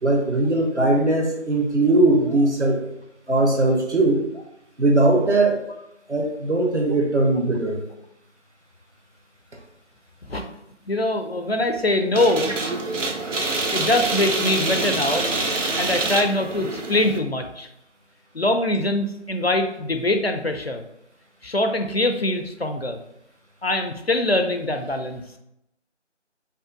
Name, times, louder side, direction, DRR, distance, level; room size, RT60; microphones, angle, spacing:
voice 1, 0.0-2.8 3.3-4.2 4.8-5.6 6.1-7.8, right 2 dB, 70° right, 1 dB, 1.2 m, -19 dB
voice 2, 10.9-12.6 13.7-15.3 15.8-17.7 18.3-20.8 21.4-23.0 23.6-25.2, left 1 dB, 55° left, 6 dB, 0.5 m, -23 dB
sound 1, 12.1-17.2, right 2 dB, 85° right, 0.8 m, -26 dB
5.4 x 2.2 x 3.7 m, 0.79 s
figure-of-eight pair, 175°, 36 cm